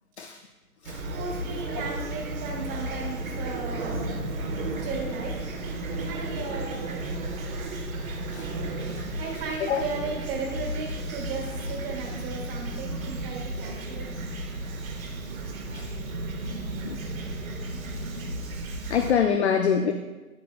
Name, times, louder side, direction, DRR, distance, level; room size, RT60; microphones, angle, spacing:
Fowl / Chirp tweet, 0.8-19.1, right 2 dB, 65° right, 1.5 m, -33 dB
voice 1, 1.1-4.1 4.8-7.2 9.0-14.1, right 4 dB, 20° right, -1 dB, 1.7 m, -36 dB
voice 2, 18.9-19.9, left 7 dB, 50° left, 6 dB, 0.6 m, -24 dB
12.0 x 7.4 x 2.3 m, 1.2 s
figure-of-eight pair, 135°, 45 cm